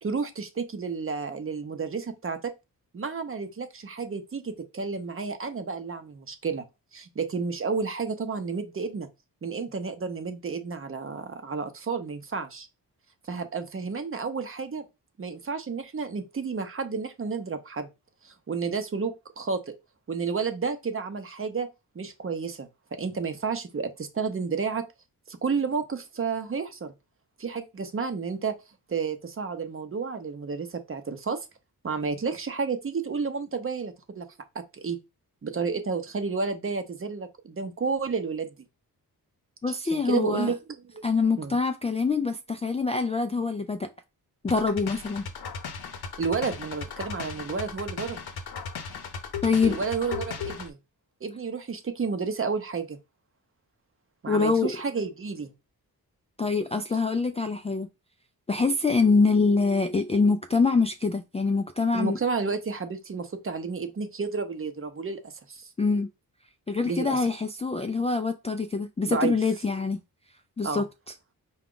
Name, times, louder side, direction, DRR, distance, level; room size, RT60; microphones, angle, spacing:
voice 1, 0.0-2.5 2.9-6.6 6.9-9.1 9.4-12.7 13.3-14.8 15.2-17.9 18.2-19.7 20.1-21.7 21.9-22.7 23.0-24.8 25.3-26.9 27.4-28.5 28.9-31.5 31.8-34.3 34.7-35.0 35.4-38.5 39.9-40.6 40.9-41.0 41.4-41.6 46.2-48.2 49.6-50.8 51.2-53.0 54.2-55.5 61.9-65.7 66.8-67.3 69.1-69.4 70.6-70.8, right 5 dB, 35° right, 0.7 m, -31 dB
voice 2, 39.6-40.5 41.0-43.9 44.4-45.2 49.4-49.8 54.3-54.8 56.4-57.9 58.5-62.2 65.8-66.1 66.7-70.0 70.6-70.8, left 4 dB, 20° left, 0.3 m, -25 dB
sound 1, 44.5-50.7, left 6 dB, 80° left, 0.8 m, -36 dB
4.8 x 2.3 x 3.7 m
cardioid pair, 90°, 37 cm